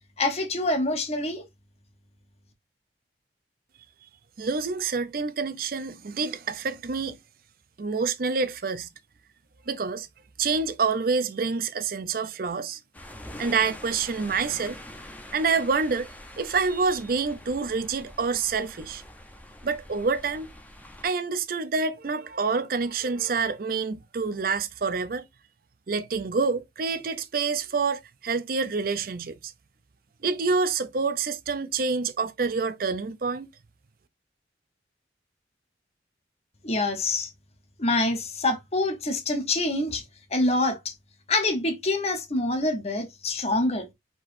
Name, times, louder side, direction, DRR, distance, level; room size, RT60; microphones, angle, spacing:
voice 1, 0.2-1.5 36.6-37.3 37.8-40.0 40.3-40.9 41.3-43.9, left 2 dB, 35° left, 1.0 m, -26 dB
voice 2, 4.4-7.2 7.8-8.9 9.7-10.1 10.4-12.8 13.4-14.8 15.3-16.1 16.4-19.0 19.6-20.5 21.0-25.2 25.9-29.5 30.2-33.5, right 4 dB, 50° right, 0.5 m, -27 dB
sound 1, 12.9-21.0, left 1 dB, 10° left, 0.8 m, -45 dB
4.6 x 4.1 x 2.6 m
head